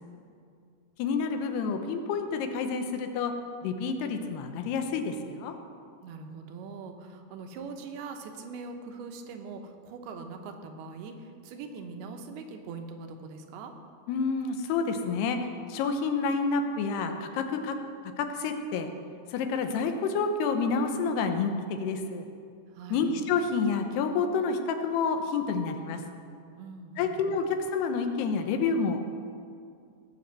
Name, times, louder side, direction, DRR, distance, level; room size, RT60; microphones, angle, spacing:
voice 1, 1.0-3.3 3.6-5.6 14.1-15.4 15.7-17.8 18.2-18.9 19.3-22.3 22.9-26.0 27.0-29.1, left 5 dB, 90° left, 6 dB, 3.0 m, -29 dB
voice 2, 6.0-13.7 22.7-23.1 26.6-27.2, right 4 dB, 80° right, 5 dB, 2.9 m, -42 dB
18.5 x 6.2 x 7.5 m, 2.4 s
omnidirectional pair, 4.5 m